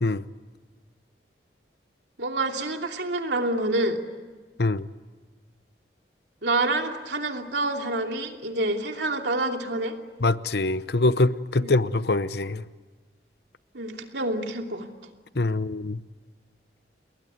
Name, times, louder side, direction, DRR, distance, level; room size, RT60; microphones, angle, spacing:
voice 1, 2.2-4.0 6.4-9.9 11.6-11.8 13.7-14.9, right 2 dB, 80° right, 2.8 m, -27 dB
voice 2, 10.2-12.6 15.4-16.0, left 2 dB, 65° left, 0.9 m, -24 dB
29.5 x 21.0 x 9.4 m
head